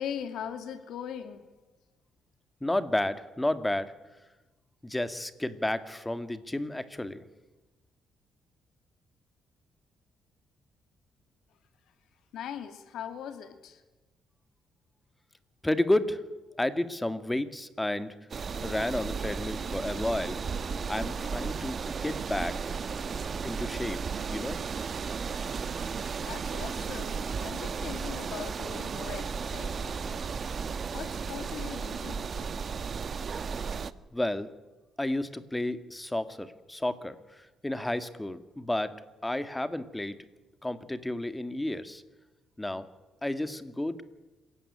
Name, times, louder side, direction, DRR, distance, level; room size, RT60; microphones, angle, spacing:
voice 1, 0.0-1.4 12.3-13.8 26.2-30.3 30.9-32.5, left 9 dB, 80° left, 9 dB, 2.4 m, -40 dB
voice 2, 2.6-3.9 4.8-7.2 15.6-16.2 16.6-18.1 18.6-20.4 20.9-22.8 23.4-24.0 24.3-24.6 34.1-34.5 35.0-38.9 39.2-40.2 40.6-42.0 42.6-42.9 43.2-44.0, left 1 dB, 10° left, 11 dB, 2.1 m, -31 dB
sound 1, 18.3-33.9, right 5 dB, 45° right, 1.2 m, -34 dB
27.0 x 17.0 x 10.0 m, 1.1 s
cardioid pair, 90°, 0 cm